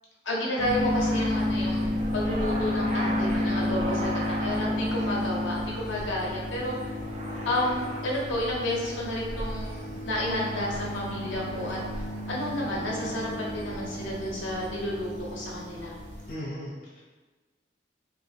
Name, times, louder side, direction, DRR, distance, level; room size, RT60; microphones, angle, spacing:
voice 1, 0.2-4.1 4.4-6.7 7.4-11.8 12.3-15.9, left 1 dB, 80° left, -3 dB, 0.7 m, -31 dB
sound 1, 0.6-16.4, left 1 dB, 35° right, 0.4 m, -31 dB
voice 2, 16.3-17.0, equal, 45° left, -6 dB, 0.4 m, -37 dB
2.8 x 2.5 x 2.7 m, 1.3 s
head